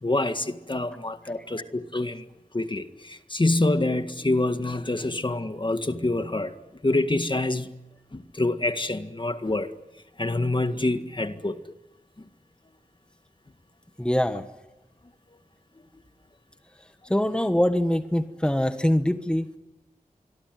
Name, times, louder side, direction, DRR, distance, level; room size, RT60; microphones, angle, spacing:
voice 1, 0.0-2.2 2.5-6.6 6.8-7.7 8.1-9.7 10.2-11.6, left 2 dB, 35° left, 9 dB, 1.8 m, -26 dB
voice 2, 14.0-14.5 17.1-19.6, equal, 5° left, 9 dB, 1.5 m, -23 dB
26.0 x 22.5 x 9.4 m, 1.0 s
wide cardioid pair, 50°, 15 cm